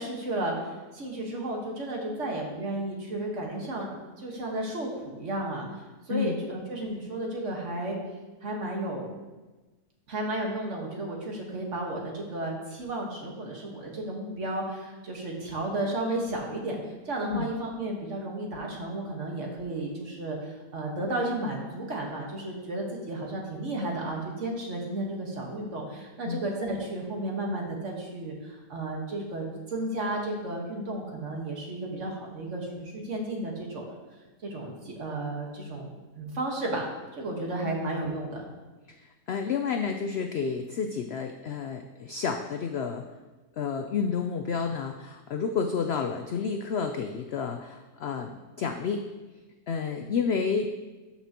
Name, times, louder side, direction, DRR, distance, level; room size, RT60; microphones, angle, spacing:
voice 1, 0.0-5.7 6.1-8.0 8.4-9.1 10.1-34.0 34.4-36.9 37.2-38.5, right 1 dB, 50° right, -1 dB, 1.7 m, -33 dB
voice 2, 6.1-6.4 17.3-17.5 26.2-26.4 37.6-37.9 39.3-43.0 43.6-49.0 49.7-50.8, left 6 dB, 75° left, 5 dB, 0.5 m, -30 dB
12.5 x 5.8 x 2.9 m, 1.2 s
omnidirectional pair, 1.6 m